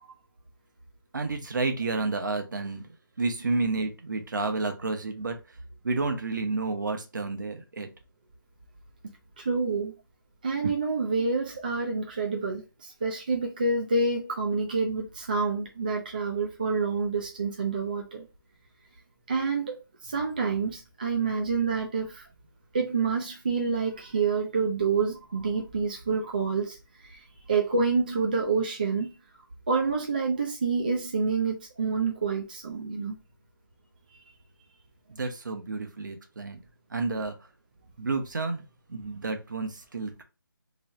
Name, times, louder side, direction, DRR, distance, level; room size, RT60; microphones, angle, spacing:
voice 1, 1.1-2.9 3.2-5.4 5.8-7.9 35.1-36.6 36.9-37.3 38.0-40.2, right 3 dB, 60° right, 0.9 m, -30 dB
voice 2, 9.4-9.9 10.4-18.3 19.3-22.3 22.7-26.8 27.0-27.2 27.5-29.1 29.7-33.1, right 4 dB, 25° right, 0.4 m, -28 dB
3.1 x 2.3 x 4.1 m
figure-of-eight pair, 170°, 12 cm